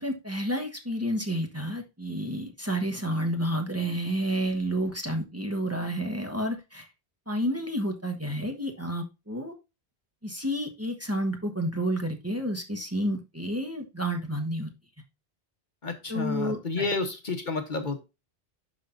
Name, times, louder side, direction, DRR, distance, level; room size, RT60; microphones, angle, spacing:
voice 1, 0.0-6.9 7.3-9.5 10.2-14.7 16.1-16.9, equal, 15° right, 3 dB, 1.2 m, -30 dB
voice 2, 15.8-18.0, left 3 dB, 50° left, 7 dB, 1.2 m, -30 dB
11.5 x 4.2 x 2.5 m, 0.25 s
omnidirectional pair, 1.1 m